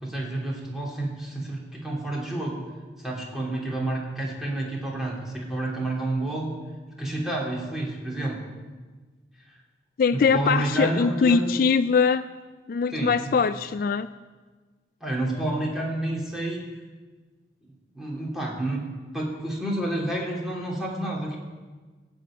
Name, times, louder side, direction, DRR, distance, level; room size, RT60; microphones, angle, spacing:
voice 1, 0.0-2.6 3.0-6.5 7.0-8.4 10.1-11.5 12.9-13.3 15.0-16.6 17.9-18.9 19.1-21.4, right 1 dB, ahead, -4 dB, 3.0 m, -29 dB
voice 2, 10.0-12.2 12.7-14.1, left 5 dB, 50° left, 13 dB, 0.3 m, -22 dB
16.5 x 6.3 x 8.9 m, 1.4 s
head